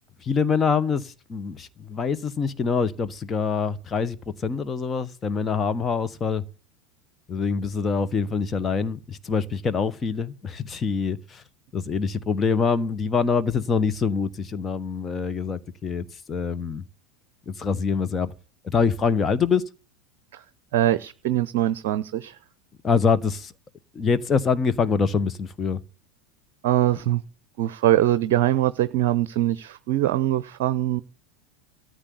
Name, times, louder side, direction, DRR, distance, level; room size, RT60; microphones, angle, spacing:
voice 1, 0.2-4.2 4.4-6.4 7.3-11.4 11.7-16.8 17.5-18.3 18.6-19.6 22.8-23.5 23.9-25.8, left 5 dB, 25° left, 1.3 m, -25 dB
voice 2, 20.7-22.4 26.6-27.2 27.6-31.0, right 13 dB, 55° right, 0.7 m, -22 dB
13.5 x 8.1 x 9.6 m
figure-of-eight pair, 80°, 0 cm